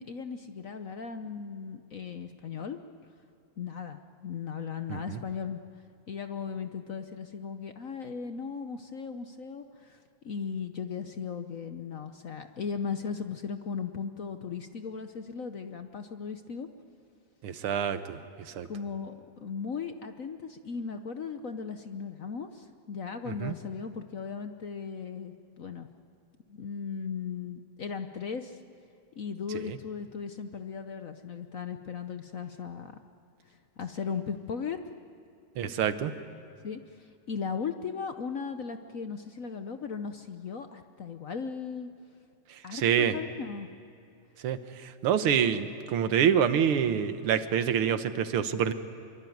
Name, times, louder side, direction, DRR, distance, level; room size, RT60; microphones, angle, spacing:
voice 1, 0.0-2.8 3.6-5.6 6.1-16.7 18.6-25.9 26.5-28.6 29.2-32.9 33.4-34.8 36.6-41.9 42.6-43.7, left 6 dB, 55° left, 8 dB, 1.0 m, -37 dB
voice 2, 17.4-18.2 18.5-18.7 23.3-23.5 29.7-29.8 35.6-36.1 42.7-43.2 44.4-48.7, right 8 dB, 90° right, 11 dB, 2.0 m, -27 dB
25.0 x 23.5 x 9.4 m, 2.6 s
omnidirectional pair, 2.3 m